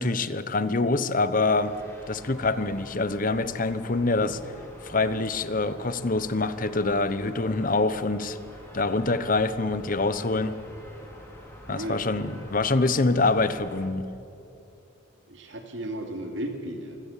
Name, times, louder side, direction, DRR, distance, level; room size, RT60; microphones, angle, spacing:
voice 1, 0.0-1.7 2.1-4.4 4.8-8.4 8.7-10.6 11.7-14.1, left 3 dB, 40° left, 13 dB, 0.9 m, -25 dB
sound 1, 1.4-13.9, equal, 15° left, 3.8 m, -47 dB
voice 2, 11.7-12.0 15.3-17.0, right 1 dB, 60° right, 4 dB, 2.8 m, -34 dB
25.0 x 16.5 x 7.4 m, 2.7 s
head